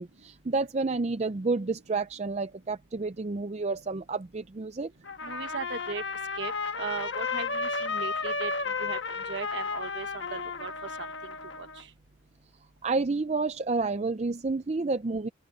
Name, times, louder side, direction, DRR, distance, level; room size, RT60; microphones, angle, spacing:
voice 1, 0.0-4.9 12.8-15.3, right 3 dB, 35° right, 0.5 m, -30 dB
Trumpet, 5.0-11.8, left 4 dB, 65° left, 1.5 m, -33 dB
voice 2, 5.2-6.0 6.4-8.5 8.8-9.0 9.3-10.7 11.0-11.1 11.6-11.9, right 4 dB, 65° right, 1.3 m, -37 dB
open air
head